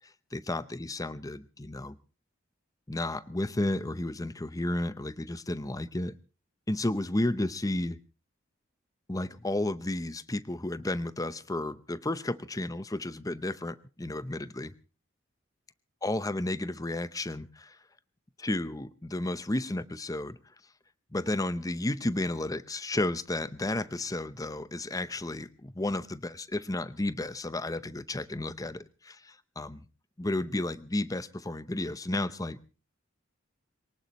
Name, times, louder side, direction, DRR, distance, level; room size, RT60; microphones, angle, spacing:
voice 1, 0.3-2.0 2.9-6.1 6.7-8.0 9.1-14.7 16.0-17.8 18.4-20.4 21.1-29.8 30.2-32.6, left 1 dB, 20° left, 15 dB, 0.7 m, -32 dB
23.0 x 18.5 x 3.1 m, 0.33 s
head